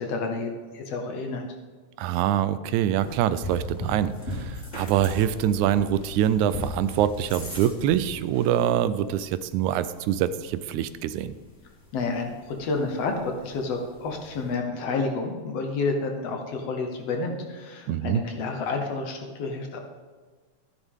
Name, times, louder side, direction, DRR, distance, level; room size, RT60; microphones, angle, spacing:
voice 1, 0.0-1.5 11.9-19.8, left 3 dB, 65° left, 3 dB, 2.0 m, -30 dB
voice 2, 2.0-11.3 17.9-18.2, right 10 dB, 90° right, 14 dB, 2.0 m, -25 dB
sound 1, 3.0-14.6, left 1 dB, 25° left, 2.5 m, -39 dB
13.5 x 10.0 x 3.6 m, 1.5 s
omnidirectional pair, 3.3 m